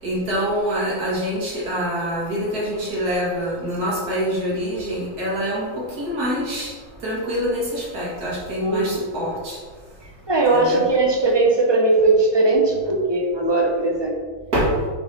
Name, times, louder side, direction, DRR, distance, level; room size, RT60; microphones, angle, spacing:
voice 1, 0.0-6.7 7.0-9.6 10.5-10.8 14.5-14.8, equal, 85° right, -6 dB, 2.4 m, -25 dB
voice 2, 8.6-9.0 10.3-14.2, right 2 dB, 30° right, 1 dB, 0.5 m, -19 dB
5.5 x 4.3 x 4.3 m, 1.5 s
omnidirectional pair, 1.6 m